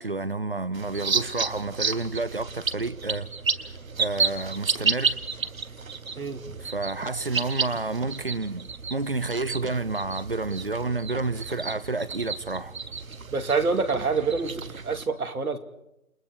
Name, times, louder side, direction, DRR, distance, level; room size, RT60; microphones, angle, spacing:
voice 1, 0.0-3.3 4.0-5.2 6.6-12.7, right 3 dB, 40° right, 0.7 m, -30 dB
sound 1, 0.7-15.0, right 5 dB, 70° right, 1.5 m, -32 dB
voice 2, 13.3-15.6, right 4 dB, 90° right, 2.6 m, -26 dB
28.5 x 22.5 x 4.8 m
hypercardioid pair, 180°, 42 cm